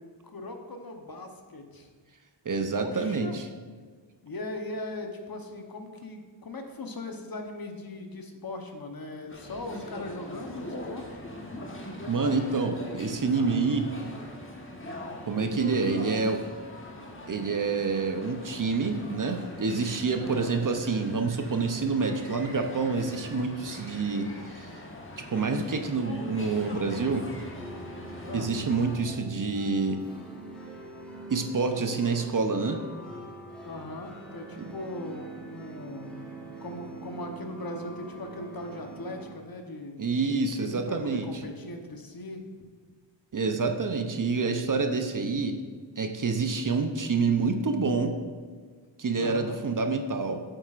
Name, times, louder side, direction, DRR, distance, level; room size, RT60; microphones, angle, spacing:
voice 1, 0.0-1.9 2.7-3.4 4.2-11.2 20.2-20.6 28.2-28.5 33.6-36.3 36.6-40.0 40.5-42.5 49.2-49.6, left 2 dB, 50° left, 4 dB, 1.0 m, -39 dB
voice 2, 2.5-3.5 12.1-13.9 15.3-16.4 17.3-24.7 25.2-27.3 28.3-30.0 31.3-32.8 34.6-34.7 40.0-41.3 43.3-45.6 46.0-48.1 49.0-50.4, right 4 dB, 45° right, 6 dB, 0.6 m, -27 dB
sound 1, 9.3-29.0, left 1 dB, 25° left, 1.2 m, -42 dB
sound 2, 26.4-39.3, right 2 dB, ahead, 1.4 m, -43 dB
8.4 x 7.8 x 2.5 m, 1.5 s
wide cardioid pair, 70°, 47 cm